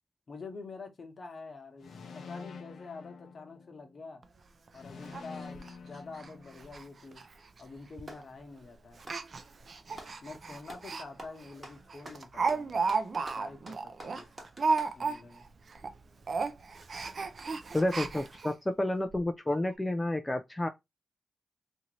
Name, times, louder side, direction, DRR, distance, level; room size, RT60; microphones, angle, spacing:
voice 1, 0.3-4.2 4.7-7.2 7.6-9.1 10.2-12.9 13.4-14.3 14.9-15.5, left 4 dB, 50° left, 1.0 m, -47 dB
sound 1, 1.8-4.0 4.7-6.9, left 5 dB, 75° left, 0.7 m, -47 dB
Speech, 4.2-4.3 4.7-4.8 5.1-5.2 5.5-5.7 6.1-6.3 6.6-6.8 7.1-7.2 8.0-8.2 9.0-11.0 11.4-11.5 11.9-15.5 15.7-15.9 16.2-18.5 19.1-19.2 19.5-19.6, right 4 dB, 50° right, 0.4 m, -33 dB
Clapping, 7.4-8.3 8.9-10.2 10.7-10.9 11.2-15.0, right 1 dB, 25° right, 1.1 m, -49 dB
voice 2, 17.7-20.7, left 1 dB, 15° left, 0.3 m, -30 dB
2.8 x 2.6 x 2.9 m
cardioid pair, 80°, 0 cm